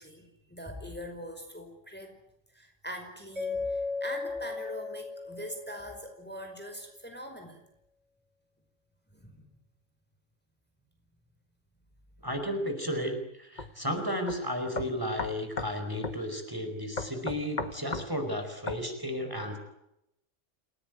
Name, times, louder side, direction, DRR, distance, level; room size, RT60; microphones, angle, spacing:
voice 1, 0.0-2.1 2.5-7.7 9.1-9.5, equal, 10° left, 4 dB, 5.0 m, -42 dB
Mallet percussion, 3.4-6.3, left 4 dB, 75° right, 6.6 m, -36 dB
voice 2, 12.2-19.6, equal, 15° right, 5 dB, 5.1 m, -33 dB
sound 1, 13.6-13.7 14.3-14.4 14.7-15.8 16.0-16.2 17.0-18.1 18.7-18.8, left 3 dB, 35° left, 1.7 m, -35 dB
29.5 x 18.0 x 9.4 m, 0.82 s
omnidirectional pair, 1.3 m